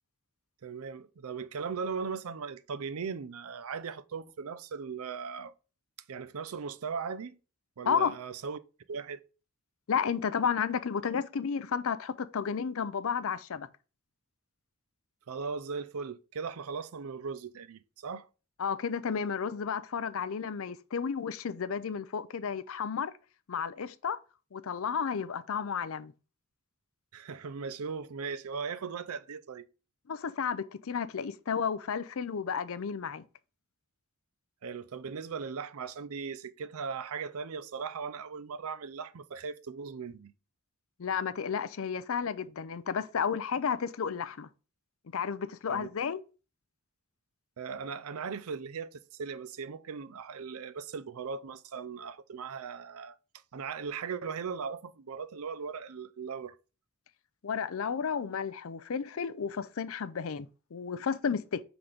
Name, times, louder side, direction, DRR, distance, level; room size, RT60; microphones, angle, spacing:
voice 1, 0.6-5.5 6.1-7.4 7.8-8.6 8.9-9.2 15.3-18.3 27.1-29.6 34.6-40.3 45.7-45.9 47.6-53.2 53.5-56.5, right 5 dB, 75° right, 0.5 m, -38 dB
voice 2, 9.9-13.7 18.6-23.1 23.5-24.2 24.5-26.1 30.1-33.2 41.0-44.5 45.1-46.2 57.4-61.6, left 6 dB, 65° left, 0.5 m, -32 dB
5.9 x 3.9 x 5.0 m
head